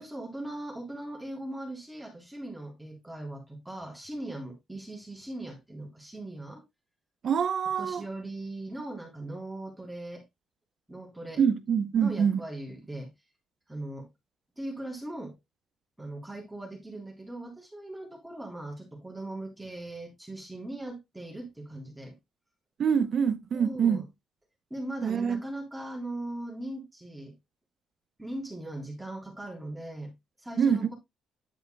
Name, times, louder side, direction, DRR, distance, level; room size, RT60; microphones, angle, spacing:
voice 1, 0.0-6.6 7.8-10.2 10.9-11.4 12.0-13.1 13.7-14.1 14.6-15.4 16.0-22.2 23.5-24.0 24.7-27.3 28.2-30.1 30.4-30.9, right 1 dB, 5° right, 3.7 m, -39 dB
voice 2, 7.2-8.0 11.4-12.3 22.8-24.0 25.0-25.4 30.6-30.9, right 7 dB, 55° right, 0.8 m, -25 dB
10.0 x 8.0 x 2.2 m
cardioid pair, 90°, 0 cm